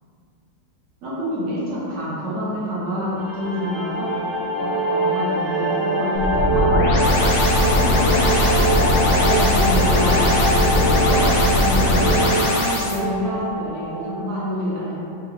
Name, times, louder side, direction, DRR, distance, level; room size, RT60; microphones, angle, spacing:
voice 1, 1.0-4.1 4.6-6.7 7.5-8.6 9.2-14.9, equal, 50° right, -8 dB, 0.9 m, -27 dB
sound 1, 3.2-14.2, right 1 dB, 10° right, 1.1 m, -24 dB
sound 2, 6.2-13.0, left 1 dB, 85° left, 1.5 m, -19 dB
4.7 x 2.5 x 3.1 m, 2.6 s
omnidirectional pair, 2.1 m